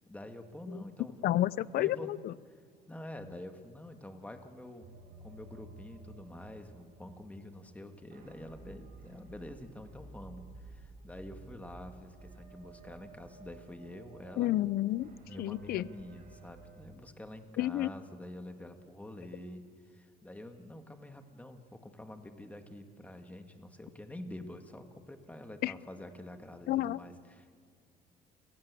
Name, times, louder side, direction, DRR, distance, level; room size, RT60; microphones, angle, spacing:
voice 1, 0.1-1.4 1.8-2.1 2.5-2.6 2.9-4.9 5.2-14.5 15.3-27.6, left 1 dB, 10° left, 6 dB, 2.0 m, -47 dB
voice 2, 1.2-2.3 14.4-15.1 15.4-15.9 17.6-17.9 25.6-25.7 26.7-27.0, left 14 dB, 65° left, 20 dB, 0.6 m, -30 dB
sound 1, 4.8-17.0, right 3 dB, 60° right, 6.4 m, -53 dB
28.5 x 17.5 x 8.4 m, 2.1 s
cardioid pair, 110°, 17 cm